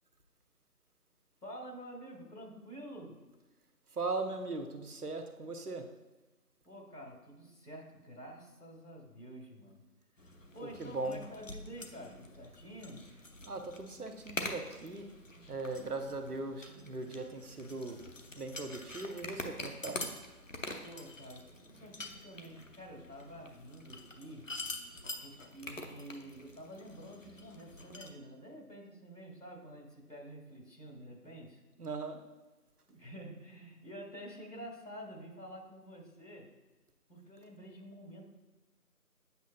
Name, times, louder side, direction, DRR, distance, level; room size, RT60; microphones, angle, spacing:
voice 1, 1.4-3.2 6.7-9.8 10.5-13.0 20.8-24.5 25.2-31.6 32.9-36.5 37.1-38.3, equal, 85° left, 0 dB, 1.9 m, -49 dB
voice 2, 3.9-5.9 10.8-11.2 13.5-15.1 15.5-18.0 18.3-20.0 31.8-32.2, right 3 dB, 70° right, 6 dB, 0.9 m, -39 dB
sound 1, 10.2-28.1, left 2 dB, 55° left, 0.7 m, -46 dB
8.1 x 5.6 x 2.2 m, 1.2 s
figure-of-eight pair, 170°, 47 cm